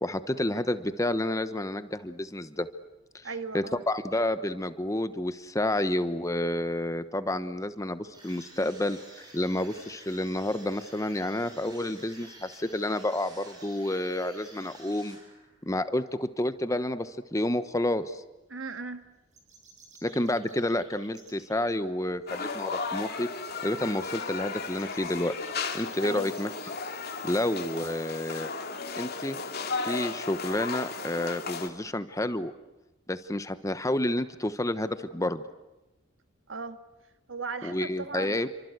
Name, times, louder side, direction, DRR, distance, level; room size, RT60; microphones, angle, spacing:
voice 1, 0.0-2.7 3.1-3.3 3.5-15.2 15.6-18.2 20.0-23.3 23.6-25.3 25.7-26.5 27.2-28.5 28.9-29.4 29.8-32.5 33.1-35.4 37.6-38.5, left 1 dB, 15° left, 11 dB, 1.1 m, -30 dB
voice 2, 3.2-3.8 18.5-19.1 26.0-26.3 36.5-36.8 37.3-38.5, right 4 dB, 70° right, 9 dB, 1.9 m, -37 dB
sound 1, 8.1-15.6, right 1 dB, 20° right, 7.9 m, -51 dB
sound 2, 19.3-21.7 24.6-26.7, right 3 dB, 35° right, 7.7 m, -55 dB
sound 3, 22.3-31.7, left 4 dB, 50° left, 2.7 m, -35 dB
29.0 x 24.5 x 8.1 m, 1.0 s
head